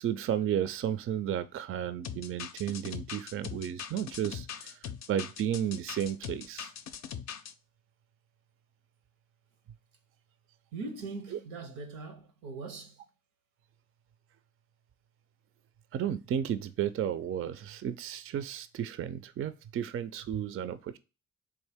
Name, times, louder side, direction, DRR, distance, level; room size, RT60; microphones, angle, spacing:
voice 1, 0.0-4.7 5.1-6.7 15.9-21.0, right 9 dB, 45° right, 0.4 m, -33 dB
sound 1, 2.0-7.5, left 8 dB, 55° left, 0.5 m, -41 dB
voice 2, 10.7-13.0, right 3 dB, 90° right, 0.8 m, -41 dB
3.6 x 2.5 x 3.4 m
supercardioid pair, 60°, 32 cm